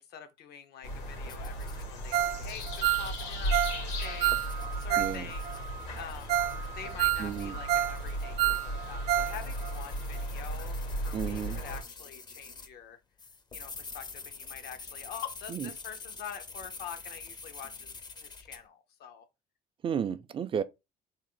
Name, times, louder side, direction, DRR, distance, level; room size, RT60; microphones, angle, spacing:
voice 1, 0.0-6.4 6.7-13.0 13.5-19.3, left 8 dB, 70° left, 0.8 m, -46 dB
sound 1, 0.8-11.8, right 1 dB, 90° left, 2.3 m, -36 dB
sound 2, 1.3-12.7 13.2-18.6, left 4 dB, 25° left, 0.5 m, -47 dB
Ringtone, 2.1-2.4 2.7-5.2 5.5-5.6 6.0-6.1 6.3-6.6 6.8-8.0 8.2-9.4 9.6-9.7 10.2-10.3, right 13 dB, 85° right, 0.6 m, -28 dB
voice 2, 5.0-5.3 7.2-7.5 11.1-11.6 19.8-20.6, right 7 dB, 30° right, 0.4 m, -32 dB
3.6 x 2.5 x 3.7 m
cardioid pair, 110°, 17 cm